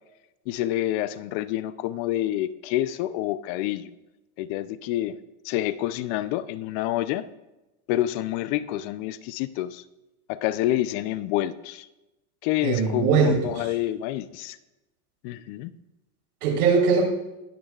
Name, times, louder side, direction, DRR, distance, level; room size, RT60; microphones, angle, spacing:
voice 1, 0.5-3.9 4.4-5.2 5.4-7.2 7.9-9.8 10.3-11.9 12.4-14.6 15.2-15.7, left 14 dB, 50° left, 15 dB, 0.6 m, -28 dB
voice 2, 12.6-13.7 16.4-17.0, right 5 dB, 85° right, 0 dB, 4.0 m, -21 dB
20.5 x 9.9 x 2.4 m, 0.98 s
supercardioid pair, 125°, 43 cm